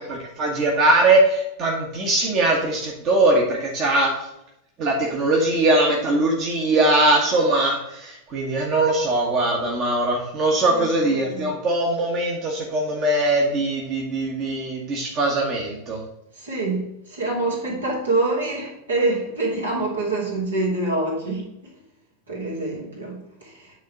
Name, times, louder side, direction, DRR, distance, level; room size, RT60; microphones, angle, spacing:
voice 1, 0.1-4.3 4.8-16.0, right 2 dB, 35° right, -1 dB, 1.4 m, -21 dB
voice 2, 16.4-21.5 22.3-23.7, right 2 dB, 70° right, -3 dB, 2.7 m, -26 dB
9.2 x 3.8 x 4.7 m, 0.84 s
figure-of-eight pair, 90°, 0 cm